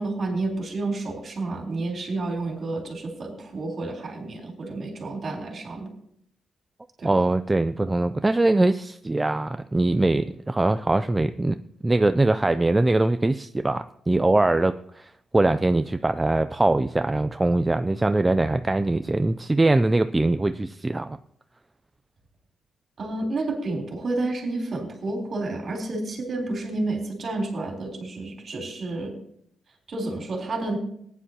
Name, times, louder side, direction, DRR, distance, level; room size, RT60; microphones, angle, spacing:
voice 1, 0.0-5.9 7.0-7.2 23.0-29.2 29.9-30.8, right 2 dB, 40° right, 0 dB, 3.6 m, -30 dB
voice 2, 7.0-11.6 11.8-21.2, right 2 dB, 15° right, 9 dB, 0.3 m, -22 dB
19.5 x 10.0 x 2.8 m, 0.70 s
wide cardioid pair, 150°, 0 cm